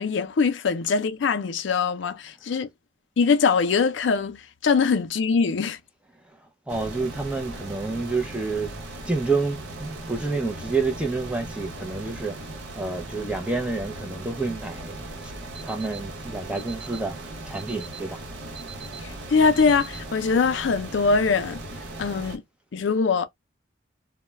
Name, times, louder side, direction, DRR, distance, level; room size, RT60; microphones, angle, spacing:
voice 1, 0.0-2.7 3.2-5.8 19.0-21.6 22.0-22.4 22.7-23.3, left 5 dB, 75° left, 0.4 m, -22 dB
voice 2, 6.2-8.8 9.0-12.4 12.7-15.3 15.6-18.2, right 3 dB, 5° right, 0.4 m, -29 dB
sound 1, 6.7-22.4, right 2 dB, 75° right, 0.8 m, -38 dB
Alarm, 15.5-16.0 16.5-17.0 17.5-18.0 18.5-19.0 19.5-20.0, right 7 dB, 25° right, 1.0 m, -42 dB
2.2 x 2.1 x 3.0 m
head